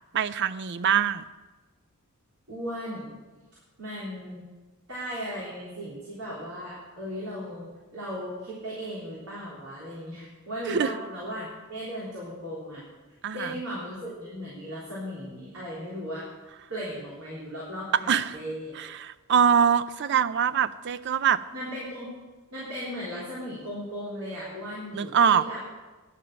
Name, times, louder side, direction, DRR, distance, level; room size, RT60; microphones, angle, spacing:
voice 1, 0.1-1.2 10.7-10.9 13.2-13.6 18.1-18.4 18.8-21.4 24.9-25.4, right 7 dB, 55° right, 14 dB, 0.4 m, -23 dB
voice 2, 2.5-3.1 3.8-4.4 4.9-7.7 7.9-12.8 13.3-16.3 16.7-18.8 21.5-22.1 22.5-25.6, equal, 85° right, -7 dB, 3.4 m, -36 dB
11.0 x 6.9 x 7.5 m, 1.2 s
head